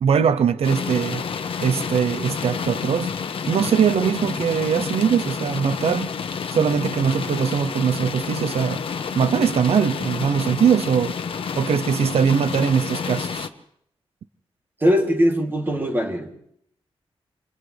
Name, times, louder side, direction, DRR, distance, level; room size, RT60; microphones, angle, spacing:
voice 1, 0.0-1.2 1.6-3.1 3.5-6.1 6.5-8.8 9.2-11.2 11.6-13.5, right 7 dB, 85° right, 12 dB, 0.7 m, -21 dB
sound 1, 0.6-13.5, left 6 dB, 65° left, 1.1 m, -29 dB
voice 2, 14.8-16.4, equal, 20° right, 1 dB, 2.9 m, -21 dB
29.0 x 27.0 x 3.4 m, 0.71 s
wide cardioid pair, 170°, 10 cm